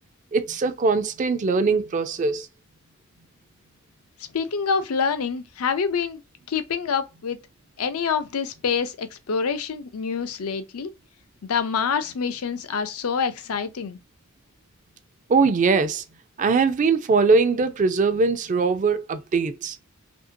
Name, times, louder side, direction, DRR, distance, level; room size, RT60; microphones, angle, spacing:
voice 1, 0.3-2.5 15.3-16.0 16.4-19.8, right 4 dB, 35° right, 0.3 m, -21 dB
voice 2, 4.3-6.2 6.5-7.4 7.8-10.9 11.4-14.0, left 6 dB, 90° left, 0.5 m, -26 dB
2.8 x 2.6 x 2.6 m
head